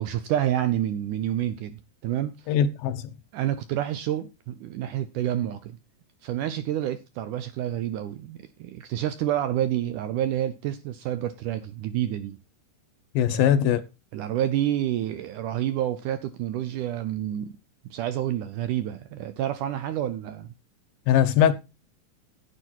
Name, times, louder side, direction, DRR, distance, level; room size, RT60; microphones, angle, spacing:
voice 1, 0.0-2.5 3.3-5.8 6.2-12.4 13.3-13.6 14.1-17.6 17.9-20.5, right 12 dB, 75° right, 2.0 m, -28 dB
voice 2, 2.5-3.2 13.1-13.8 21.1-21.5, left 9 dB, 75° left, 2.6 m, -21 dB
10.0 x 9.3 x 4.5 m
omnidirectional pair, 4.3 m